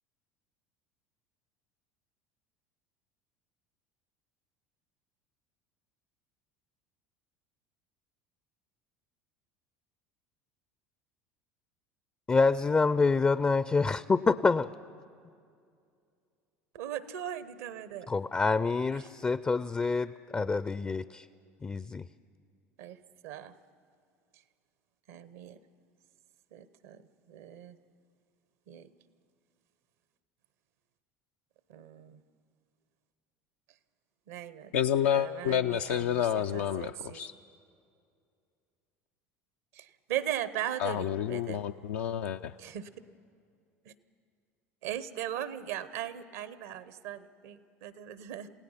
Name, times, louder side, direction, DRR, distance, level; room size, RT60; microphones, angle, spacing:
voice 1, 12.3-14.7 18.1-21.3 21.6-22.0, left 4 dB, 20° left, 16 dB, 0.4 m, -27 dB
voice 2, 16.7-18.1 18.9-19.1 22.8-23.5 25.1-25.6 26.5-27.0 27.3-27.8 28.7-28.9 31.7-32.2 34.3-34.7 35.1-37.2 39.7-41.6 42.6-42.9 43.8-43.9 44.8-48.5, right 11 dB, 70° right, 15 dB, 0.9 m, -39 dB
voice 3, 34.7-37.3 40.8-42.5, left 9 dB, 75° left, 5 dB, 0.4 m, -29 dB
28.0 x 17.0 x 5.7 m, 2.3 s
hypercardioid pair, 75°, 8 cm